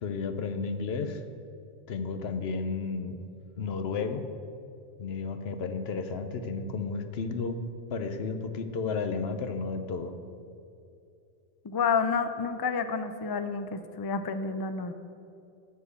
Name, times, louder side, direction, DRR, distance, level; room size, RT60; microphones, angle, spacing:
voice 1, 0.0-1.2 1.9-3.2 3.6-4.3 5.0-7.6 7.9-10.1, left 4 dB, 75° left, 9 dB, 1.0 m, -32 dB
voice 2, 11.6-14.9, left 5 dB, 35° left, 10 dB, 0.4 m, -29 dB
12.5 x 4.4 x 8.2 m, 2.5 s
omnidirectional pair, 1.1 m